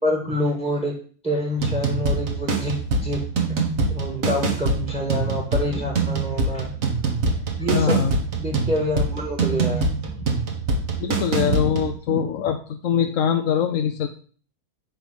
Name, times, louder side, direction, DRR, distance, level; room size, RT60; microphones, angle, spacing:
voice 1, 0.0-0.9 1.2-3.2 3.9-6.7 7.6-8.0 8.4-10.3 11.4-11.7 12.1-12.2, left 1 dB, 5° right, 0 dB, 1.6 m, -27 dB
sound 1, 1.6-11.9, right 3 dB, 55° right, 1.7 m, -24 dB
voice 2, 7.7-8.1 11.0-14.1, left 8 dB, 65° left, 6 dB, 0.9 m, -23 dB
10.0 x 3.5 x 6.2 m, 0.43 s
omnidirectional pair, 1.7 m